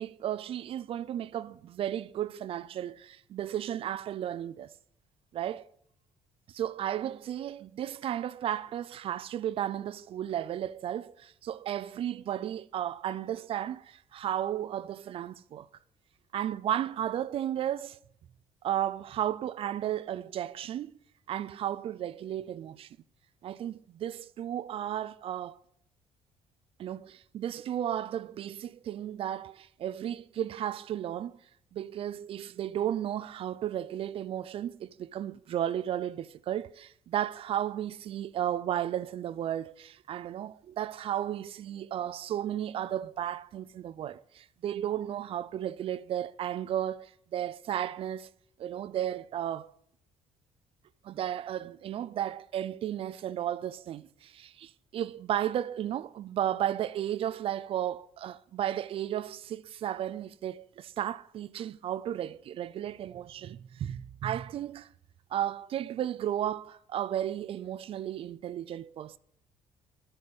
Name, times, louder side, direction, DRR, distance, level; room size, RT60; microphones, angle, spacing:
voice 1, 0.0-4.7 5.3-5.7 6.5-15.7 16.3-18.0 18.6-20.9 21.3-22.9 23.4-25.6 26.8-31.4 31.7-48.3 48.6-49.7 51.0-64.9 65.3-69.2, right 11 dB, 55° right, 0.4 m, -34 dB
8.8 x 5.3 x 6.7 m
cardioid pair, 90°, 11 cm